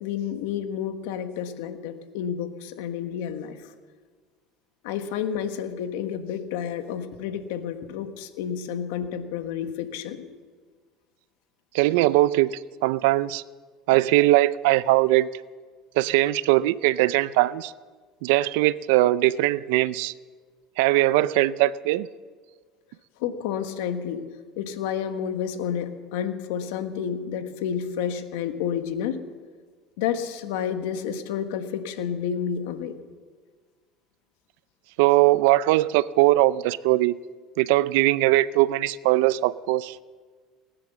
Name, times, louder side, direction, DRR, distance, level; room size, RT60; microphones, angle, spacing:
voice 1, 0.0-3.7 4.8-10.3 23.2-24.2 24.6-29.2 30.0-32.9, left 8 dB, 85° left, 8 dB, 1.4 m, -30 dB
voice 2, 11.7-13.4 13.9-15.3 16.0-17.7 18.2-20.1 20.8-22.1 35.0-37.2 37.6-40.0, right 17 dB, 80° right, 18 dB, 0.4 m, -20 dB
19.5 x 10.5 x 7.0 m, 1.5 s
supercardioid pair, 130°, 0 cm